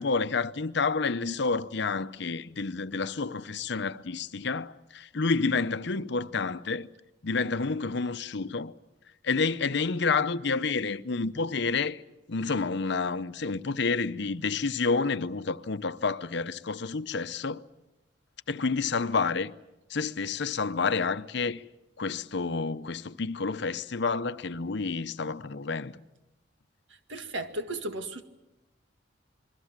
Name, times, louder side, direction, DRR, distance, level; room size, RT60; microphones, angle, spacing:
voice 1, 0.0-6.9 7.2-8.7 9.2-12.0 12.3-17.6 18.5-19.5 19.9-21.6 22.0-25.9, left 4 dB, 65° left, 0.8 m, -29 dB
voice 2, 26.9-28.2, right 1 dB, 75° right, 2.0 m, -35 dB
27.5 x 22.0 x 7.4 m
head